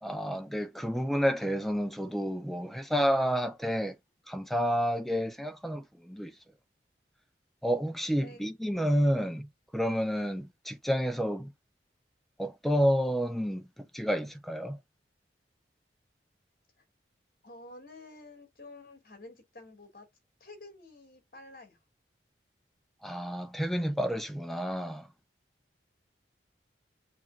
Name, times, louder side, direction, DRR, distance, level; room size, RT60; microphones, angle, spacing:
voice 1, 0.0-4.0 4.3-6.3 7.6-11.5 12.4-14.8 23.0-25.1, equal, ahead, 0.5 m, -30 dB
voice 2, 17.4-20.1 20.4-21.8, left 2 dB, 50° left, 2.8 m, -50 dB
7.5 x 2.6 x 2.8 m
head